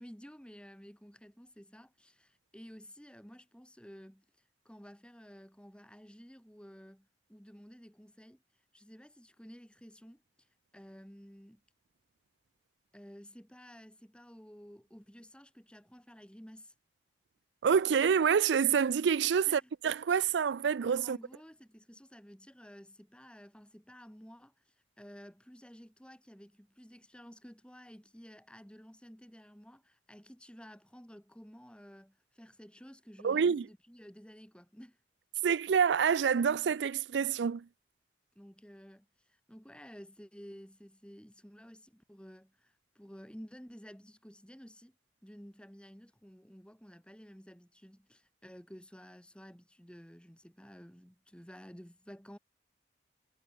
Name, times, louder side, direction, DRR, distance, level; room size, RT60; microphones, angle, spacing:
voice 1, 0.0-4.2 4.6-8.4 8.7-10.5 10.7-11.6 12.9-16.7 19.5-19.7 21.0-35.0 38.4-45.0 45.2-52.4, equal, 5° left, 7.4 m, -53 dB
voice 2, 17.6-21.2 33.2-33.6 35.4-37.6, right 7 dB, 85° right, 0.4 m, -27 dB
head